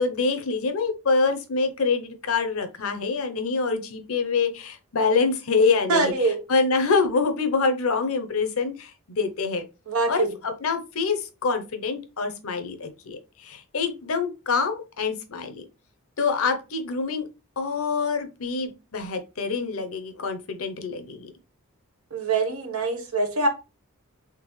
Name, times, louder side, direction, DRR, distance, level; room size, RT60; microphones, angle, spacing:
voice 1, 0.0-6.1 6.5-9.6 10.1-15.6 16.2-17.3 17.6-21.3, left 4 dB, 75° left, 7 dB, 0.7 m, -25 dB
voice 2, 5.9-6.4 9.9-10.3 22.1-23.5, right 3 dB, 90° right, 5 dB, 1.0 m, -24 dB
3.7 x 3.3 x 3.1 m, 0.28 s
head